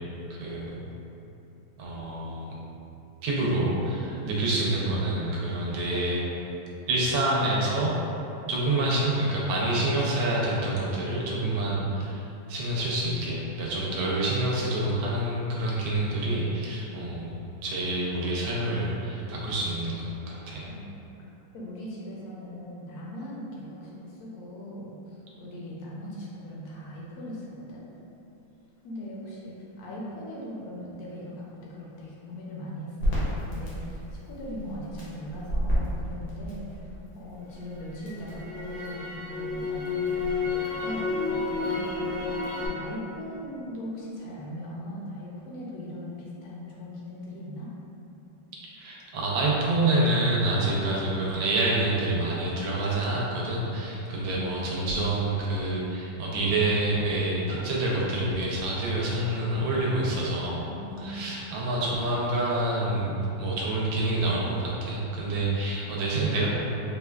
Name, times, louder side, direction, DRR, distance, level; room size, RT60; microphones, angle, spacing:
voice 1, 0.3-0.7 1.8-2.5 3.2-6.5 6.9-8.0 8.5-17.3 17.6-20.7 48.8-60.6 61.0-63.1 63.4-66.5, right 2 dB, 80° right, -5 dB, 1.3 m, -27 dB
voice 2, 16.8-17.2 20.7-21.0 21.5-27.8 28.8-47.7 53.8-54.6 60.6-61.4 65.3-65.8, equal, 70° left, -5 dB, 0.9 m, -40 dB
Crackle, 33.0-37.1 37.5-42.7, left 2 dB, 85° left, 1.7 m, -30 dB
4.9 x 2.2 x 2.3 m, 2.9 s
omnidirectional pair, 2.1 m